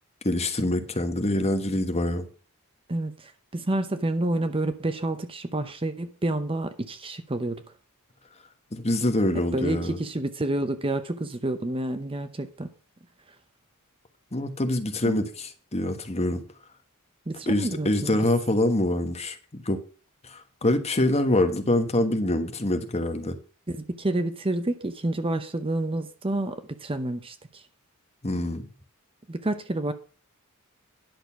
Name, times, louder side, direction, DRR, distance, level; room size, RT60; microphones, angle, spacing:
voice 1, 0.2-2.3 8.7-10.0 14.3-16.4 17.5-19.4 19.6-19.8 20.2-23.4 28.2-28.7, left 1 dB, 30° left, 1.3 m, -25 dB
voice 2, 2.9-7.6 9.3-12.7 15.1-15.2 17.3-18.2 23.7-27.6 29.3-29.9, right 1 dB, 25° right, 0.8 m, -29 dB
10.5 x 6.6 x 5.9 m
head